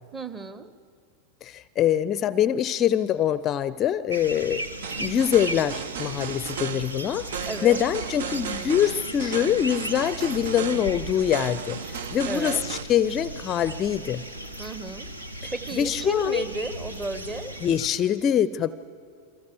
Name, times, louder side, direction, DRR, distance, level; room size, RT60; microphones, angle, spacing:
voice 1, 0.1-0.7 7.4-7.8 12.2-12.6 14.6-15.1 15.5-17.5, right 2 dB, 20° right, 12 dB, 1.2 m, -33 dB
voice 2, 1.4-4.7 5.0-14.2 15.4-16.4 17.6-18.7, left 10 dB, 30° left, 17 dB, 0.5 m, -24 dB
sound 1, 4.1-17.9, right 1 dB, 80° right, 1.5 m, -37 dB
sound 2, 4.8-12.8, right 8 dB, 55° right, 0.6 m, -35 dB
28.5 x 23.0 x 6.8 m, 2.3 s
figure-of-eight pair, 90°, 0 cm